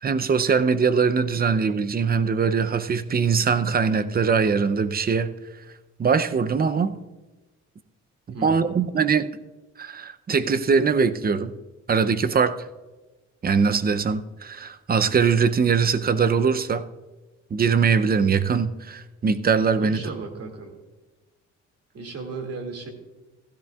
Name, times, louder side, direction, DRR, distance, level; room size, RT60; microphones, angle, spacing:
voice 1, 0.0-5.3 6.0-7.0 8.3-9.3 9.8-11.5 11.9-12.6 13.4-16.8 17.5-20.0, right 5 dB, 30° right, 12 dB, 0.6 m, -22 dB
voice 2, 8.3-8.7 19.8-20.7 21.9-22.9, right 3 dB, 50° right, 3 dB, 2.4 m, -35 dB
16.0 x 13.0 x 2.4 m, 1.2 s
cardioid pair, 90°, 30 cm